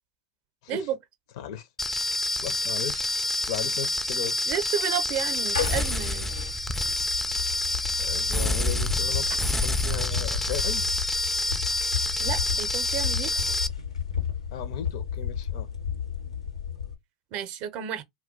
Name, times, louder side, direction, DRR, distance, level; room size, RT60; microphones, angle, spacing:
voice 1, 1.4-1.7 2.4-3.1 3.5-4.4 8.0-9.3 9.6-10.8 14.5-15.7, left 9 dB, 60° left, 0.5 m, -36 dB
sound 1, 1.8-13.7, left 1 dB, 10° left, 0.3 m, -28 dB
voice 2, 4.5-6.3 12.2-13.3 17.3-18.0, right 9 dB, 45° right, 0.6 m, -31 dB
sound 2, 5.2-16.9, left 7 dB, 85° left, 0.8 m, -32 dB
2.2 x 2.2 x 3.7 m
hypercardioid pair, 95°, 3 cm